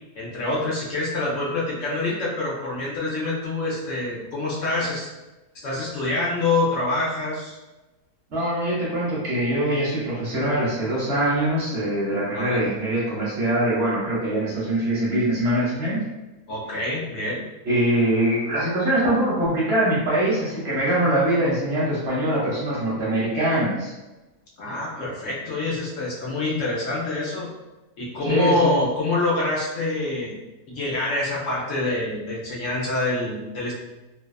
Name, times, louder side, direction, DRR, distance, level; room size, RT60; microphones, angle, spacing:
voice 1, 0.2-5.1 5.6-7.6 12.3-12.7 16.5-17.4 24.6-27.5 28.0-30.4 30.7-33.7, left 2 dB, 65° left, -5 dB, 0.9 m, -26 dB
voice 2, 8.3-16.0 17.6-23.9 28.3-28.7, right 1 dB, 50° right, -7 dB, 1.0 m, -23 dB
2.6 x 2.2 x 2.3 m, 1.1 s
omnidirectional pair, 1.5 m